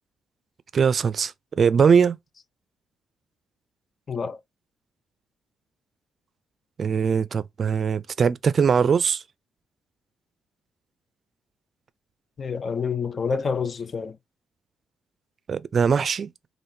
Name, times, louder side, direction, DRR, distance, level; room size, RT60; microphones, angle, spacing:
voice 1, 0.7-2.2 6.8-9.2 15.5-16.3, right 6 dB, 45° right, 0.4 m, -21 dB
voice 2, 4.1-4.4 12.4-14.2, left 5 dB, 40° left, 0.4 m, -28 dB
3.5 x 2.5 x 2.6 m
cardioid pair, 90°, 0 cm